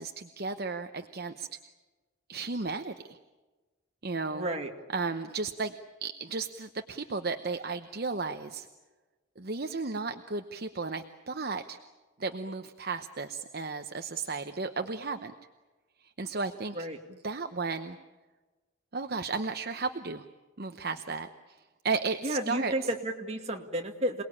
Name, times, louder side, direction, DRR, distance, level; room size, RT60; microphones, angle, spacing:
voice 1, 0.0-1.5 2.3-3.2 4.0-4.5 4.9-8.7 9.4-11.8 12.2-15.3 16.0-16.8 17.2-18.0 18.9-20.3 20.6-22.7, right 4 dB, 50° right, 7 dB, 0.9 m, -34 dB
voice 2, 4.3-4.7 16.7-17.0 22.2-24.2, right 1 dB, 30° right, 2 dB, 2.3 m, -32 dB
28.0 x 19.5 x 8.7 m, 1.2 s
head